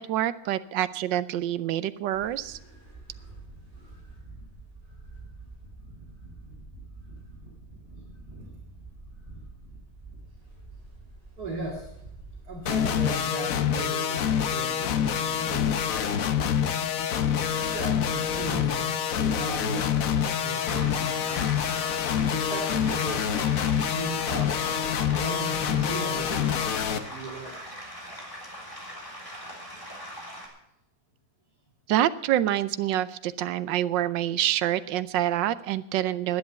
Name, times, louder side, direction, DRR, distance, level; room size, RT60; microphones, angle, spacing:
voice 1, 0.0-2.6 31.9-36.4, right 12 dB, 80° right, 15 dB, 1.3 m, -26 dB
sound 1, 2.1-12.8, right 2 dB, 20° right, 5.1 m, -46 dB
voice 2, 11.4-11.9 12.4-16.7 17.4-21.6 22.3-23.6 23.8-24.7 25.1-27.6, right 2 dB, 55° right, -2 dB, 2.8 m, -37 dB
sound 2, 12.7-27.0, left 8 dB, 60° left, 1.1 m, -26 dB
sound 3, 20.3-30.5, equal, 10° left, 3.2 m, -41 dB
10.5 x 10.5 x 8.1 m, 0.80 s
omnidirectional pair, 2.0 m